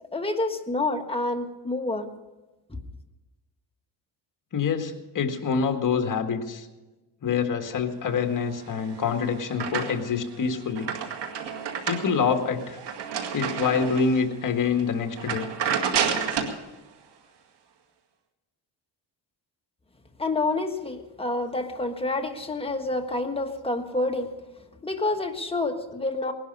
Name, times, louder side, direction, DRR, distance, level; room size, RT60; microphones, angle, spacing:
voice 1, 0.1-2.1 20.2-24.3 24.8-26.3, left 2 dB, 10° left, 5 dB, 1.5 m, -28 dB
voice 2, 4.5-6.7 7.2-10.9 11.9-12.8 13.3-15.5, left 5 dB, 45° left, 4 dB, 2.0 m, -26 dB
sound 1, 8.7-10.2 10.6-14.2 14.7-14.8 15.2-16.6, right 7 dB, 65° right, 2.1 m, -30 dB
19.5 x 12.0 x 5.5 m, 1.1 s
cardioid pair, 100°, 45 cm